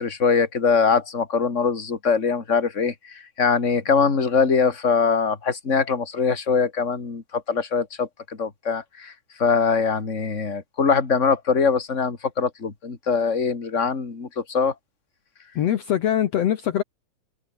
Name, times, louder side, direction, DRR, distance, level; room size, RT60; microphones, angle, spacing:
voice 1, 0.0-9.1 9.4-14.7, left 5 dB, 25° left, 2.9 m, -22 dB
voice 2, 15.6-16.8, left 10 dB, 65° left, 2.3 m, -22 dB
omnidirectional pair, 3.4 m